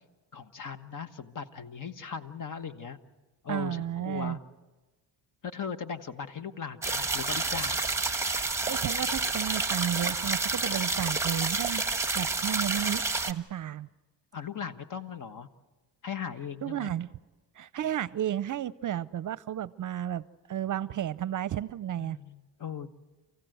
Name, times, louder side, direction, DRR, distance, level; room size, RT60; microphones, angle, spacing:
voice 1, 0.3-3.0 3.4-4.4 5.4-7.8 14.3-15.5 16.0-16.9 22.0-22.9, left 7 dB, 45° left, 10 dB, 1.4 m, -38 dB
voice 2, 3.5-4.4 8.7-11.8 12.1-13.9 16.6-17.1 17.6-20.2 20.5-22.2, right 11 dB, 45° right, 19 dB, 0.6 m, -32 dB
sound 1, 6.8-13.3, right 3 dB, 5° right, 1.2 m, -29 dB
29.0 x 15.5 x 7.9 m, 1.2 s
cardioid pair, 80°, 42 cm